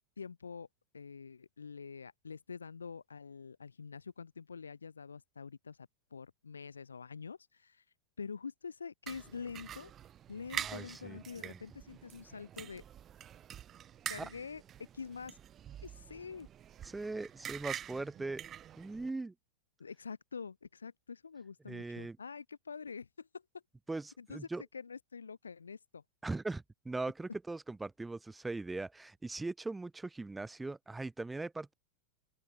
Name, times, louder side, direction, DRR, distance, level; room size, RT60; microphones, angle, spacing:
voice 1, 0.2-0.7 0.9-7.8 8.2-9.9 10.3-12.8 14.1-14.6 14.9-15.4 15.8-16.5 19.8-23.4 24.2-24.5 24.7-26.0, left 5 dB, 75° left, 1.7 m, -46 dB
sound 1, 9.1-19.1, right 10 dB, 30° right, 1.6 m, -46 dB
voice 2, 10.6-11.6 14.2-14.3 16.8-18.4 18.8-19.3 21.7-22.2 23.9-24.6 26.2-31.7, right 3 dB, 10° right, 2.9 m, -40 dB
open air
figure-of-eight pair, 90°, 0 cm